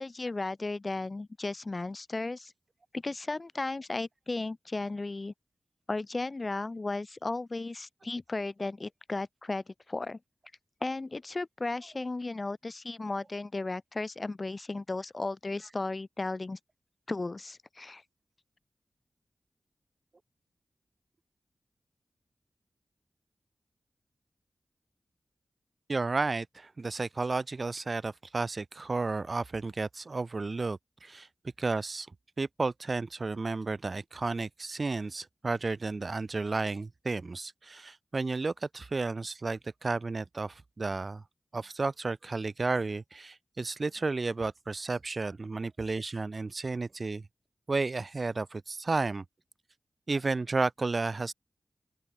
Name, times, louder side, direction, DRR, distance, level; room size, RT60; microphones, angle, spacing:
voice 1, 0.0-2.5 2.9-5.3 5.9-10.2 10.8-16.6 17.1-18.0, left 3 dB, 45° left, 1.0 m, -35 dB
voice 2, 25.9-31.3 31.6-32.1 32.4-41.2 41.5-47.2 47.7-49.2 50.1-51.3, right 3 dB, 50° right, 0.4 m, -32 dB
open air
cardioid pair, 50°, 0 cm